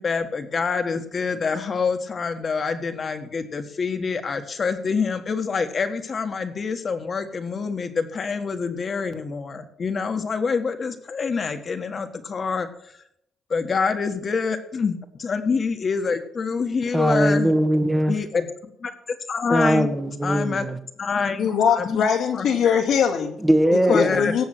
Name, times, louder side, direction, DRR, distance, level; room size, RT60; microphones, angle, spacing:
voice 1, 0.0-12.7 13.5-14.9 15.2-17.5 18.1-18.5 18.8-19.9 20.2-20.6 21.0-22.1 22.3-22.5 23.9-24.3, left 5 dB, 45° left, 1.6 m, -26 dB
voice 2, 16.9-18.2 19.5-20.8 23.4-24.3, right 1 dB, 10° right, 1.3 m, -20 dB
voice 3, 21.4-23.4 23.9-24.4, left 7 dB, 80° left, 2.4 m, -21 dB
17.5 x 7.2 x 6.2 m
cardioid pair, 90°, 0 cm